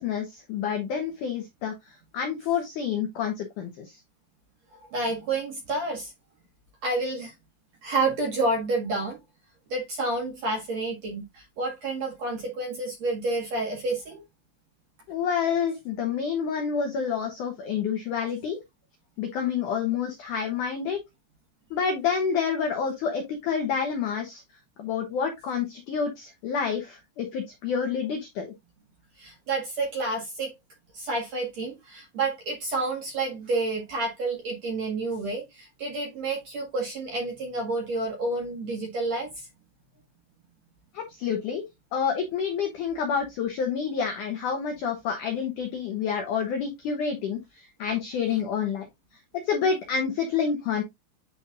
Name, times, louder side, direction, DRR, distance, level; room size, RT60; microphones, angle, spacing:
voice 1, 0.0-1.7 2.1-4.0 15.1-18.6 19.2-21.0 21.7-24.4 24.8-28.5 40.9-41.7 41.9-48.9 49.5-50.8, left 6 dB, 85° left, 1.8 m, -28 dB
voice 2, 4.9-6.1 6.8-7.3 7.8-9.2 9.7-14.2 29.2-30.5 30.9-39.3, right 2 dB, 55° right, 2.1 m, -29 dB
9.7 x 4.1 x 2.4 m
omnidirectional pair, 5.2 m